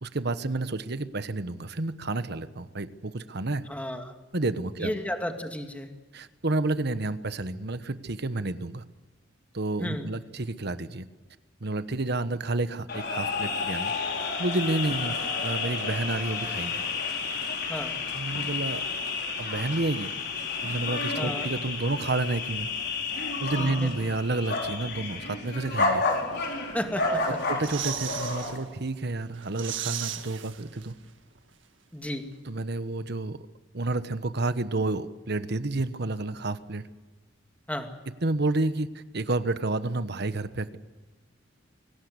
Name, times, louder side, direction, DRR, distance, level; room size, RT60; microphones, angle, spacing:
voice 1, 0.0-3.6 4.3-4.9 6.1-8.8 9.5-11.0 11.6-13.9 14.4-16.9 18.1-18.8 19.4-20.1 20.6-22.7 23.4-26.0 27.3-30.9 32.5-33.4 33.7-36.9 38.2-40.8, right 2 dB, 60° right, 12 dB, 1.2 m, -30 dB
voice 2, 3.7-4.1 4.8-5.9 9.8-10.1 17.7-17.9 21.1-21.5 23.6-23.9 26.7-27.4 31.9-32.3 37.7-37.9, equal, 10° left, 5 dB, 2.3 m, -33 dB
sound 1, 12.9-28.6, left 4 dB, 60° left, 4.7 m, -31 dB
sound 2, 27.3-28.6 28.9-29.0 29.3-31.1 31.4-31.5, right 10 dB, 75° right, 1.8 m, -36 dB
24.5 x 18.0 x 8.2 m, 1.2 s
head